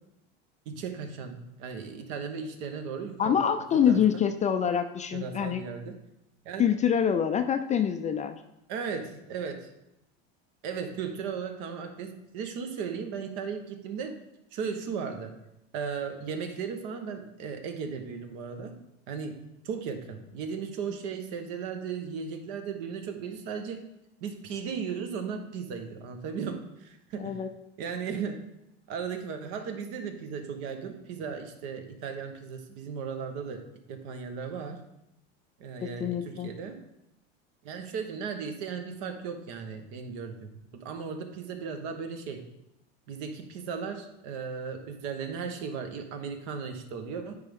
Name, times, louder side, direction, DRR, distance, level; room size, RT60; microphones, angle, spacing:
voice 1, 0.7-3.4 3.9-4.0 5.1-6.0 6.4-6.7 8.7-9.7 10.6-14.2 14.5-15.3 15.7-18.8 19.1-19.4 19.6-23.8 24.2-27.4 27.8-28.4 28.9-33.6 33.9-34.8 35.6-36.7 37.6-42.4 43.1-47.4, right 6 dB, 65° right, 6 dB, 1.1 m, -36 dB
voice 2, 3.2-5.6 6.6-8.4 27.2-27.5 35.8-36.5, left 8 dB, 25° left, 8 dB, 0.4 m, -26 dB
9.7 x 3.6 x 3.6 m, 0.85 s
supercardioid pair, 110°, 31 cm